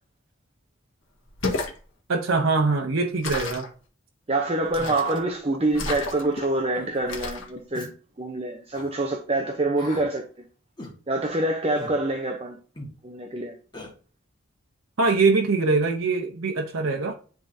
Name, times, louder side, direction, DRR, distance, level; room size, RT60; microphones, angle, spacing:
sound 1, 1.3-1.8 3.2-3.7 4.7-5.2 5.7-6.5 7.1-7.5, left 3 dB, 75° left, 1.6 m, -31 dB
voice 1, 2.1-3.7 15.0-17.2, right 3 dB, 90° right, 0.8 m, -23 dB
voice 2, 4.3-7.9 8.2-10.2 11.1-12.6 13.0-13.6, right 2 dB, 30° right, 0.7 m, -26 dB
Human voice, 4.8-5.0 5.7-6.0 6.7-6.9 7.7-7.9 8.7-8.9 9.8-10.1 10.8-11.0 11.8-12.0 12.8-12.9 13.7-13.9, left 1 dB, 20° left, 1.6 m, -39 dB
10.5 x 3.7 x 2.7 m
head